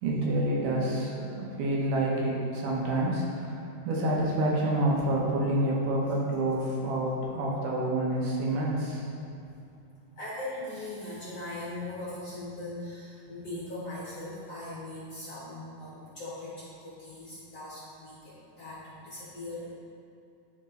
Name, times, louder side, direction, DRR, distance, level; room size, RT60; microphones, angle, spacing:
voice 1, 0.0-9.0, right 1 dB, 85° right, -4 dB, 2.8 m, -28 dB
voice 2, 10.2-19.7, left 2 dB, 45° left, -8 dB, 1.5 m, -40 dB
10.0 x 4.4 x 3.8 m, 2.6 s
omnidirectional pair, 3.6 m